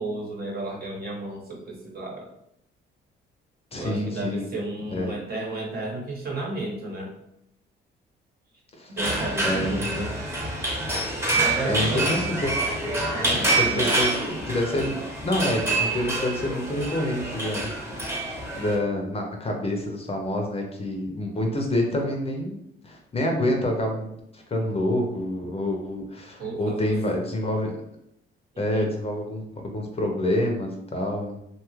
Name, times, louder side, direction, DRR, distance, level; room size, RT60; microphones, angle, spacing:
voice 1, 0.0-2.3 3.8-7.1 8.9-10.2 11.3-12.1 13.1-14.0 26.4-27.0 28.7-28.9, right 2 dB, 50° right, -1 dB, 1.0 m, -33 dB
voice 2, 3.7-4.5 4.9-5.1 8.8-9.0 9.4-9.9 11.7-12.6 13.6-14.2 14.5-18.0 18.5-27.7 28.6-31.4, left 1 dB, 30° left, 2 dB, 0.6 m, -27 dB
sound 1, 9.0-18.8, right 2 dB, 10° right, 0.9 m, -27 dB
2.7 x 2.3 x 3.1 m, 0.77 s
cardioid pair, 90°, 20 cm